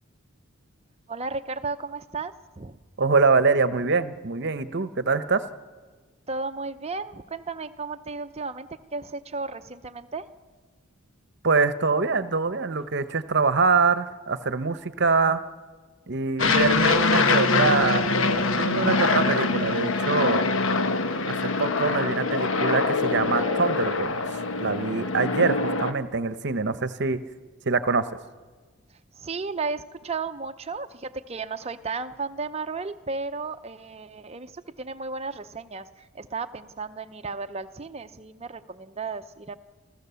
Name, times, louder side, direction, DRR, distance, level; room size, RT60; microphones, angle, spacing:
voice 1, 1.1-2.8 6.3-10.3 29.2-39.5, right 4 dB, 30° right, 8 dB, 0.7 m, -34 dB
voice 2, 3.0-5.4 11.4-15.4 16.1-20.4 21.3-24.2 24.6-27.2 27.7-28.1, right 4 dB, 55° right, 12 dB, 0.9 m, -24 dB
Aircraft, 16.4-25.9, left 3 dB, 65° left, 1.1 m, -24 dB
28.5 x 14.5 x 7.0 m, 1.4 s
head